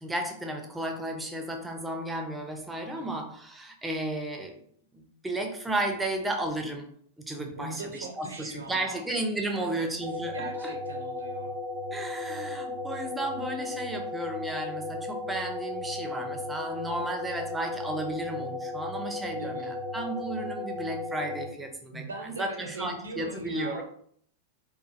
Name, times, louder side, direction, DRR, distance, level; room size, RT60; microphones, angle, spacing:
voice 1, 0.0-4.6 4.9-6.9 7.2-10.7 11.9-23.8, right 1 dB, 10° right, 3 dB, 0.5 m, -34 dB
voice 2, 7.4-9.0 9.5-9.9 10.3-11.5 19.3-19.7 21.9-23.8, right 3 dB, 75° right, 4 dB, 0.6 m, -40 dB
sound 1, 10.0-21.5, left 2 dB, 25° left, 0.9 m, -35 dB
3.0 x 2.2 x 2.6 m, 0.62 s
figure-of-eight pair, 95°, 0 cm